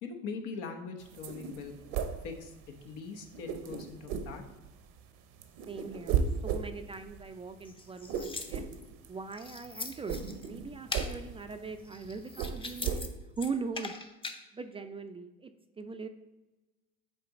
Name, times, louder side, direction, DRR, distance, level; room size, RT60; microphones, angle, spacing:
voice 1, 0.0-1.7 2.2-2.5 2.8-4.4, left 5 dB, 75° left, 4 dB, 1.0 m, -41 dB
sound 1, 1.0-2.9 3.3-5.0 5.3-13.0, right 7 dB, 75° right, 0.7 m, -35 dB
voice 2, 5.7-8.6 9.1-10.2 10.4-13.1 13.4-13.9 14.5-15.5 15.8-16.1, right 4 dB, 20° right, 8 dB, 0.3 m, -40 dB
sound 2, 7.6-8.9 9.3-10.5 10.9-11.1 11.8-13.1 13.4-14.4, left 3 dB, 15° left, 0.6 m, -41 dB
6.6 x 3.8 x 4.0 m, 1.1 s
supercardioid pair, 80°, 31 cm